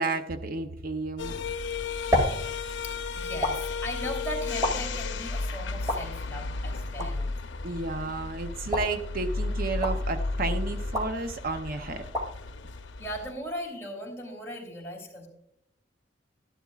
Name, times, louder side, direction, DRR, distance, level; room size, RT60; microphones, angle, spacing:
voice 1, 0.0-1.4 7.6-12.1, right 3 dB, 55° right, 7 dB, 0.7 m, -32 dB
sound 1, 1.2-13.3, left 3 dB, 85° left, 0.6 m, -33 dB
sound 2, 1.4-13.6, left 1 dB, 15° right, 2.2 m, -35 dB
voice 2, 2.8-7.3 13.0-15.3, equal, 15° left, -1 dB, 2.9 m, -38 dB
12.5 x 11.0 x 2.4 m, 0.76 s
head